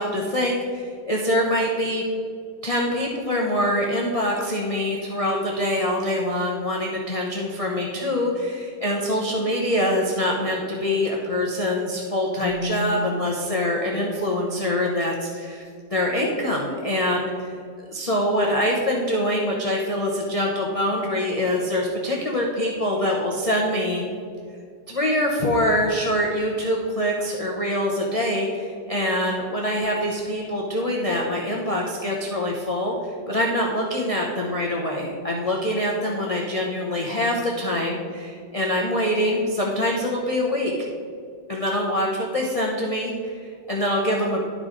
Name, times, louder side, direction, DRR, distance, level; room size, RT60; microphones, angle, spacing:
voice 1, 0.0-2.0 2.6-15.6 15.9-17.5 17.8-24.0 24.9-32.9 33.3-40.7 41.5-44.4, left 1 dB, 40° left, -2 dB, 0.5 m, -24 dB
Keyboard (musical), 12.4-15.6, left 2 dB, 60° left, 1.2 m, -35 dB
11.5 x 4.8 x 3.9 m, 2.3 s
omnidirectional pair, 2.0 m